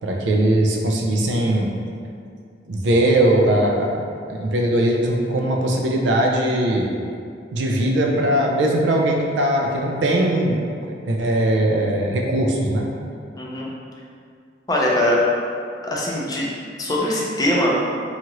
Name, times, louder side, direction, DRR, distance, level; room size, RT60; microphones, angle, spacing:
voice 1, 0.0-1.7 2.7-4.0 4.3-6.9 7.5-12.9, right 1 dB, 80° right, 0 dB, 0.4 m, -20 dB
voice 2, 13.4-13.7 14.7-15.2 15.9-16.5 16.8-17.8, left 1 dB, 20° left, -4 dB, 0.4 m, -21 dB
2.8 x 2.4 x 2.9 m, 2.3 s
head